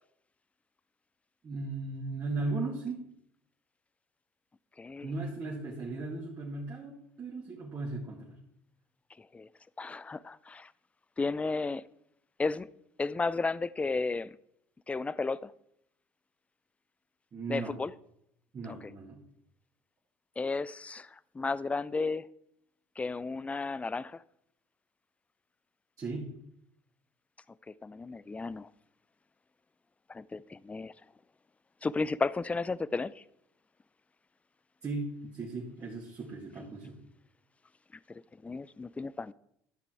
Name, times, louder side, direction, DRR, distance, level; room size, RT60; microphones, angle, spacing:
voice 1, 1.4-3.1 5.0-8.4 17.3-17.8 18.5-19.2 26.0-26.3 34.8-37.0, right 3 dB, 40° right, -4 dB, 2.3 m, -37 dB
voice 2, 4.8-5.1 9.2-9.5 9.8-10.7 11.2-11.8 12.4-12.7 13.0-14.4 14.9-15.5 17.5-17.9 18.7-18.8 20.4-22.3 23.0-24.2 27.7-28.7 30.1-30.9 31.8-33.2 38.1-39.3, left 3 dB, 15° left, 20 dB, 0.4 m, -33 dB
12.0 x 5.9 x 4.6 m, 0.74 s
supercardioid pair, 75°, 9 cm